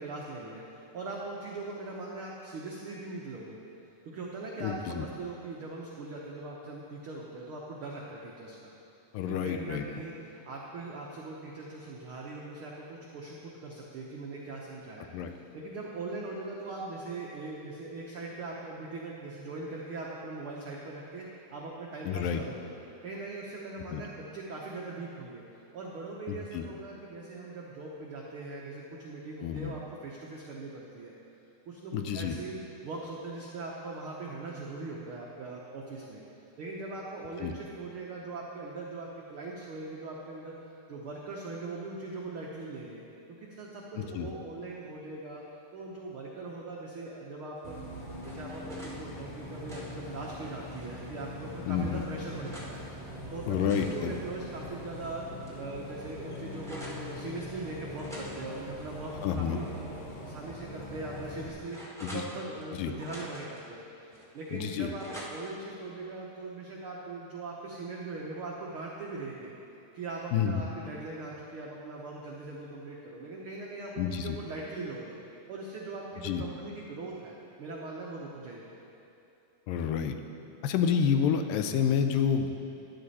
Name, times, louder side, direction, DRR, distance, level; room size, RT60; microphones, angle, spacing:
voice 1, 0.0-3.6 4.0-8.7 9.3-22.7 23.0-25.4 25.7-31.1 31.7-36.2 36.6-40.5 40.9-43.0 43.3-45.4 45.7-47.8 48.2-55.2 55.6-69.5 69.9-75.1 75.5-78.6, right 3 dB, 85° right, -3 dB, 1.1 m, -41 dB
voice 2, 4.6-5.1 9.1-9.8 15.1-15.3 22.0-22.4 23.9-24.0 26.3-26.7 29.4-29.7 31.9-32.4 37.4-37.5 44.0-44.3 51.7-52.0 53.5-54.1 59.2-59.6 62.0-62.2 62.8-62.9 64.5-64.9 70.3-70.6 74.0-74.4 76.2-76.4 79.7-80.2 80.6-82.5, left 7 dB, 90° left, 7 dB, 2.4 m, -29 dB
Bus, 47.6-61.5, left 1 dB, 65° left, 3.3 m, -42 dB
sound 1, 47.7-49.0 49.4-51.1 51.6-52.7 53.3-55.1 55.4-55.5 55.8-57.1 57.9-59.8 60.1-60.2 60.8-62.7 62.9-63.6 64.1-65.6, equal, 5° left, 0.4 m, -48 dB
12.5 x 10.5 x 4.2 m, 2.9 s
omnidirectional pair, 3.9 m